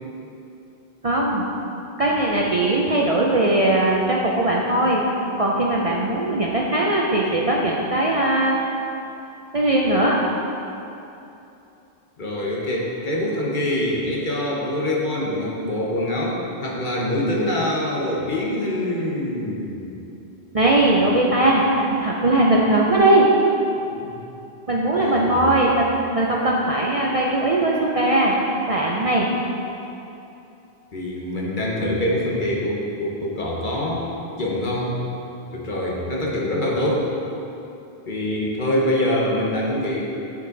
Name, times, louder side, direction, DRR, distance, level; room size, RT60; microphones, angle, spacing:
voice 1, 1.0-1.5 2.0-5.0 5.4-8.6 9.5-10.2 20.5-23.3 24.7-28.3 28.7-29.3, right 1 dB, 40° right, -3 dB, 0.6 m, -19 dB
voice 2, 12.2-16.4 16.6-20.0 24.0-24.1 24.9-25.4 30.9-34.1 34.4-35.0 35.5-37.1 38.1-40.1, left 1 dB, 50° left, -4 dB, 1.3 m, -24 dB
9.2 x 5.5 x 3.9 m, 2.8 s
omnidirectional pair, 1.1 m